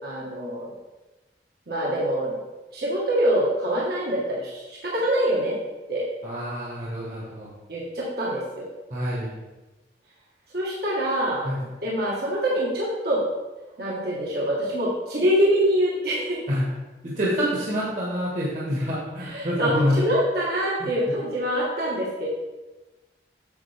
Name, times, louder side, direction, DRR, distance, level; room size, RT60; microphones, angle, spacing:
voice 1, 0.0-0.7 1.7-2.4 2.7-5.6 5.9-6.0 7.7-8.7 10.5-11.4 11.8-13.2 13.8-16.4 19.3-22.3, equal, 60° right, -6 dB, 1.7 m, -25 dB
voice 2, 6.2-7.5 8.9-9.4 11.4-11.6 16.5-16.7 17.0-19.9 20.8-20.9, equal, 45° right, -6 dB, 1.7 m, -27 dB
8.9 x 6.8 x 3.5 m, 1.1 s
head